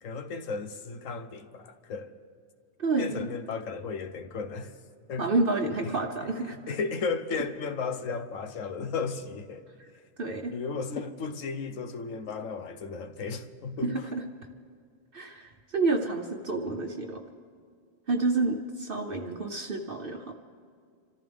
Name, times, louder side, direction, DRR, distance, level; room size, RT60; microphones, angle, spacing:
voice 1, 0.0-2.1 3.0-4.7 5.1-5.3 6.4-9.6 10.5-14.1, left 5 dB, 75° left, 1.3 m, -34 dB
voice 2, 2.8-3.3 5.2-6.7 10.2-10.5 13.8-14.2 15.1-17.2 18.1-20.3, right 3 dB, 45° right, 1.0 m, -29 dB
26.5 x 14.5 x 3.5 m
omnidirectional pair, 1.4 m